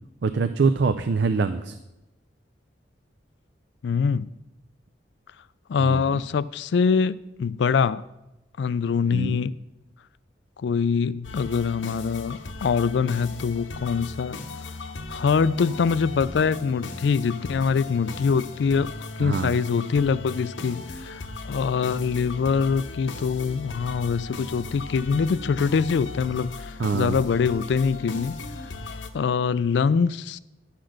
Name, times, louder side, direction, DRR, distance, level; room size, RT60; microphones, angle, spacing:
voice 1, 0.2-1.8 5.8-6.2 9.1-9.4 19.2-19.5 26.8-27.2, right 4 dB, 65° right, 0.4 m, -24 dB
voice 2, 3.8-4.3 5.7-8.0 8.6-9.5 10.6-14.4 15.1-18.9 19.2-21.2 21.5-28.3 29.1-30.4, left 5 dB, 65° left, 0.3 m, -24 dB
sound 1, 11.2-29.1, left 3 dB, 85° left, 0.9 m, -37 dB
10.5 x 5.9 x 6.4 m
head